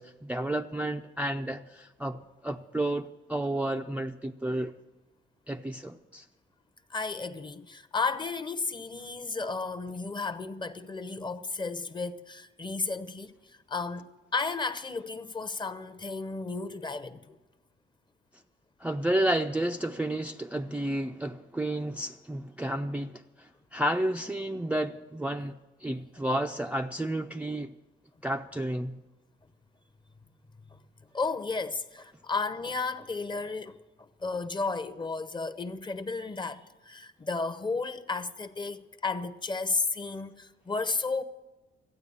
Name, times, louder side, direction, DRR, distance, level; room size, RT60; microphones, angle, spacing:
voice 1, 0.0-4.7 5.5-6.3 18.8-27.7 28.2-29.0, right 1 dB, 5° right, 0.4 m, -31 dB
voice 2, 6.9-17.4 30.7-30.8 31.1-41.2, left 4 dB, 25° left, 0.8 m, -33 dB
13.5 x 9.1 x 8.8 m
cardioid pair, 90°, 20 cm